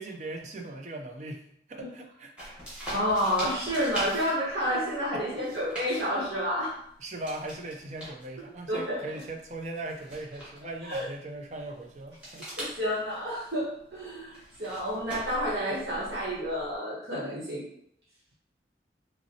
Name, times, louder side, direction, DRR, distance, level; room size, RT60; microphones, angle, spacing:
voice 1, 0.0-1.4 1.7-2.8 5.1-5.4 7.0-12.5, right 2 dB, 40° right, 3 dB, 0.5 m, -39 dB
sound 1, 2.4-16.8, right 1 dB, 5° right, 1.3 m, -44 dB
voice 2, 2.9-6.7 8.4-9.0 10.8-11.1 12.6-17.6, equal, 70° right, -7 dB, 1.1 m, -30 dB
5.4 x 2.1 x 2.8 m, 0.68 s
head